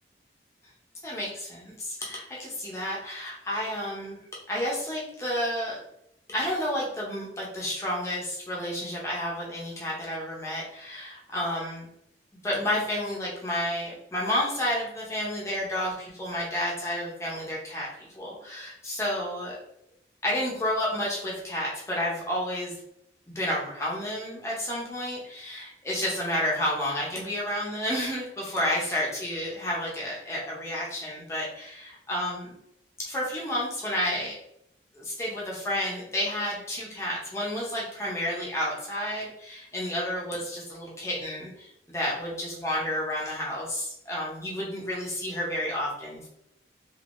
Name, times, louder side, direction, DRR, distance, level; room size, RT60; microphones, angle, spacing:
voice 1, 1.0-4.2 4.5-5.8 6.3-11.9 12.4-17.9 18.1-19.6 20.2-22.7 23.3-32.5 33.0-34.4 34.9-46.3, left 1 dB, 15° left, -5 dB, 0.8 m, -31 dB
3.4 x 2.7 x 2.5 m, 0.77 s
head